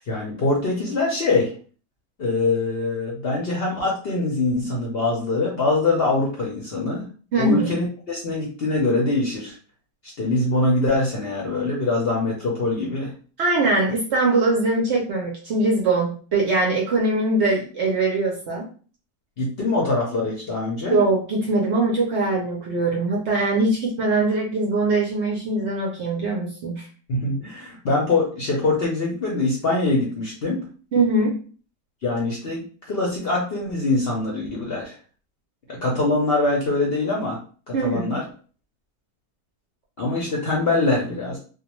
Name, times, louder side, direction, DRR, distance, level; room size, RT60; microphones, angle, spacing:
voice 1, 0.1-1.5 2.2-7.1 7.4-9.5 10.2-13.1 19.4-21.0 27.1-30.6 32.0-32.6 32.9-34.9 35.7-37.4 37.7-38.2 40.0-41.4, left 2 dB, 60° left, -3 dB, 0.6 m, -23 dB
voice 2, 7.3-7.7 13.4-18.7 20.9-26.9 30.9-31.4 37.7-38.2, right 2 dB, 65° right, -2 dB, 0.7 m, -22 dB
2.4 x 2.2 x 2.9 m, 0.40 s
omnidirectional pair, 1.6 m